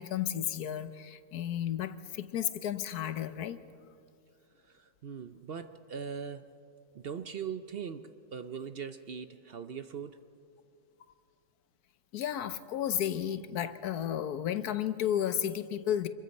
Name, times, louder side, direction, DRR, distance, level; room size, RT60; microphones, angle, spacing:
voice 1, 0.0-3.6 12.1-16.1, left 10 dB, 85° left, 12 dB, 1.4 m, -33 dB
voice 2, 4.6-6.5 6.9-10.2, right 7 dB, 55° right, 10 dB, 0.7 m, -41 dB
26.5 x 22.0 x 5.4 m, 2.5 s
omnidirectional pair, 1.6 m